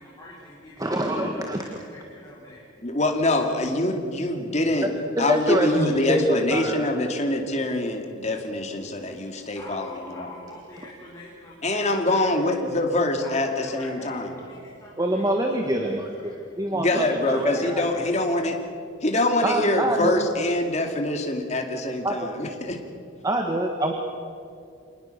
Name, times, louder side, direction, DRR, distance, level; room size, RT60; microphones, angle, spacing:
voice 1, 0.0-2.6 9.6-12.3 13.2-16.6 17.2-18.1, left 1 dB, 15° left, -6 dB, 4.3 m, -45 dB
voice 2, 0.8-1.7 4.8-4.9 5.2-6.9 15.0-17.8 19.4-20.2 22.0-22.2 23.2-23.9, right 1 dB, 15° right, 3 dB, 1.5 m, -25 dB
voice 3, 2.8-4.9 5.2-10.3 11.6-14.4 16.7-18.6 19.0-22.8, left 2 dB, 35° left, 3 dB, 2.4 m, -25 dB
26.5 x 19.5 x 6.7 m, 2.5 s
head